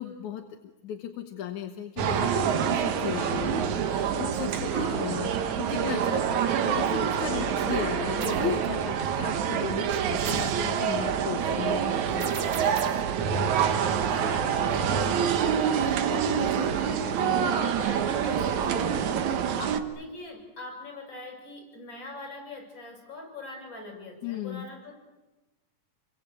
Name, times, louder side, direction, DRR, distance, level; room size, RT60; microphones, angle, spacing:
voice 1, 0.0-12.9 17.2-17.6 24.2-24.7, left 10 dB, 80° left, 4 dB, 2.6 m, -36 dB
sound 1, 2.0-19.8, right 8 dB, 75° right, 2.7 m, -26 dB
voice 2, 4.7-5.1 7.2-7.7 13.7-24.9, left 3 dB, 40° left, 2 dB, 8.4 m, -42 dB
sound 2, 8.2-8.5 10.2-10.6 12.2-13.1, right 6 dB, 45° right, 1.6 m, -38 dB
27.5 x 24.0 x 8.5 m, 1.1 s
omnidirectional pair, 3.4 m